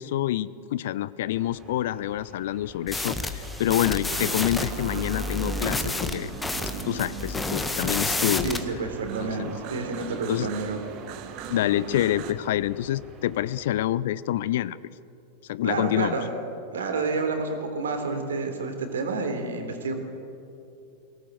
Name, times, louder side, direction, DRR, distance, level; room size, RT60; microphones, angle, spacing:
voice 1, 0.0-6.3 6.8-8.6 9.2-9.5 10.3-10.5 11.5-14.8 15.5-16.2, left 13 dB, 55° left, 19 dB, 0.6 m, -27 dB
sound 1, 1.3-13.7, right 2 dB, 25° right, 4.3 m, -47 dB
sound 2, 2.9-8.6, left 2 dB, 10° left, 1.5 m, -30 dB
sound 3, 4.1-12.3, right 12 dB, 45° right, 1.3 m, -39 dB
voice 2, 8.4-10.8 15.6-16.3 16.7-19.9, right 4 dB, 65° right, 6 dB, 3.4 m, -29 dB
23.0 x 18.0 x 7.7 m, 2.6 s
figure-of-eight pair, 90°, 0 cm